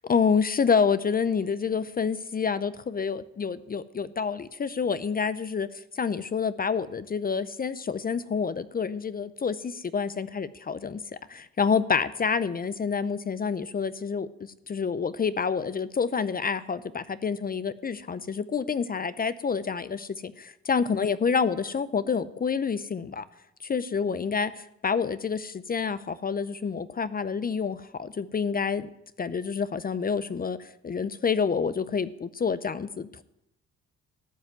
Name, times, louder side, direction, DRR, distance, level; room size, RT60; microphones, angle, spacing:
voice 1, 0.1-5.7 5.9-11.0 11.3-23.2 23.6-28.9 29.2-33.2, left 6 dB, 30° left, 15 dB, 0.6 m, -28 dB
14.0 x 5.6 x 9.3 m, 0.81 s
cardioid pair, 90°, 30 cm